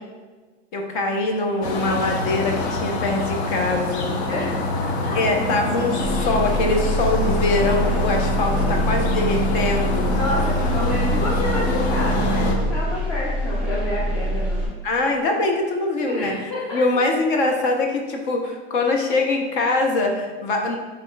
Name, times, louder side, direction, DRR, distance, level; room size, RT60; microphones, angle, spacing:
voice 1, 0.7-4.1 5.1-10.1 14.8-20.8, left 2 dB, 50° left, 2 dB, 0.8 m, -23 dB
sound 1, 1.6-12.6, left 2 dB, 75° left, 0.9 m, -25 dB
sound 2, 6.0-14.7, equal, 5° right, 1.3 m, -25 dB
voice 2, 10.1-14.7 16.1-16.8, left 1 dB, 15° left, -7 dB, 0.4 m, -28 dB
6.3 x 3.7 x 2.3 m, 1.3 s
supercardioid pair, 165°, 33 cm